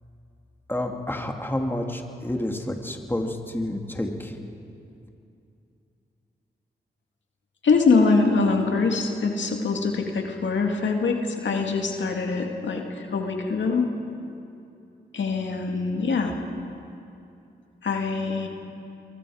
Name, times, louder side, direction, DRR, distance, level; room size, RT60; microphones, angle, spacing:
voice 1, 0.7-4.4, left 1 dB, 10° left, 3 dB, 2.5 m, -29 dB
voice 2, 7.6-13.9 15.1-16.3 17.8-18.5, left 4 dB, 75° left, 2 dB, 2.3 m, -23 dB
27.0 x 23.0 x 5.0 m, 2.6 s
cardioid pair, 45°, 19 cm